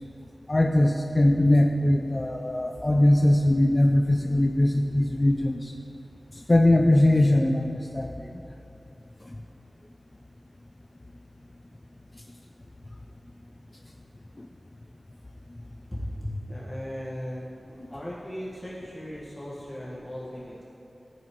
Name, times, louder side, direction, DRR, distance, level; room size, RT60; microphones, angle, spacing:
voice 1, 0.5-5.7 6.5-8.3 14.4-14.5, left 1 dB, 30° left, 4 dB, 0.4 m, -21 dB
voice 2, 15.9-17.5 17.9-20.6, equal, 5° left, -8 dB, 1.6 m, -37 dB
11.5 x 9.3 x 3.1 m, 2.8 s
wide cardioid pair, 75°, 0 cm